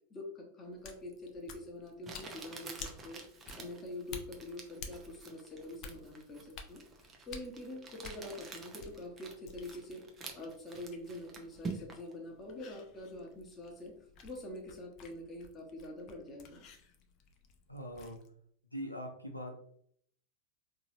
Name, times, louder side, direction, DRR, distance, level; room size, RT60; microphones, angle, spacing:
voice 1, 0.1-3.2 3.6-6.8 7.3-10.0 10.4-16.6, left 1 dB, 20° left, 0 dB, 1.0 m, -45 dB
sound 1, 0.7-18.3, left 5 dB, 35° left, 0.5 m, -53 dB
Crumpling crinkling, 1.1-1.2 2.0-12.1, right 4 dB, 20° right, 0.6 m, -48 dB
voice 2, 17.7-18.2 18.7-19.5, equal, 90° left, 1 dB, 0.5 m, -42 dB
3.9 x 2.8 x 2.7 m, 0.64 s
figure-of-eight pair, 90°, 0 cm